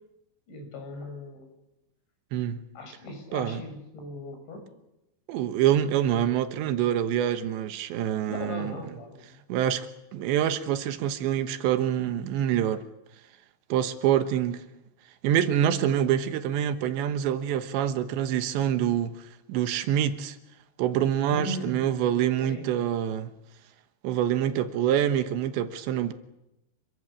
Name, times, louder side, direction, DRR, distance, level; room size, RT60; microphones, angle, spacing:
voice 1, 0.5-1.5 2.7-4.6 8.3-9.4 21.3-21.8 22.4-22.9, left 2 dB, 75° left, 8.3 m, -38 dB
voice 2, 2.3-2.6 3.3-3.6 5.3-8.8 9.5-9.9 10.1-12.9 13.7-14.6 15.2-20.4 20.8-23.3 24.0-26.1, right 10 dB, 80° right, 3.4 m, -26 dB
28.5 x 23.0 x 7.4 m
omnidirectional pair, 5.2 m